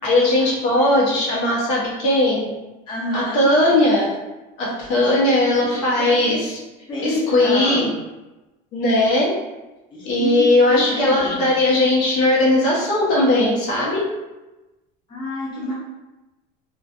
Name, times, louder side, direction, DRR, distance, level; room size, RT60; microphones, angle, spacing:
voice 1, 0.0-2.5 3.1-4.2 4.6-6.6 7.0-7.9 8.7-9.3 10.0-14.0, left 1 dB, 80° left, -5 dB, 0.9 m, -18 dB
voice 2, 2.9-3.5 5.0-5.1 5.7-6.4 6.9-7.9 9.9-11.4 15.1-15.7, left 1 dB, 25° left, -6 dB, 0.6 m, -28 dB
2.4 x 2.4 x 2.5 m, 1.1 s
cardioid pair, 175°, 19 cm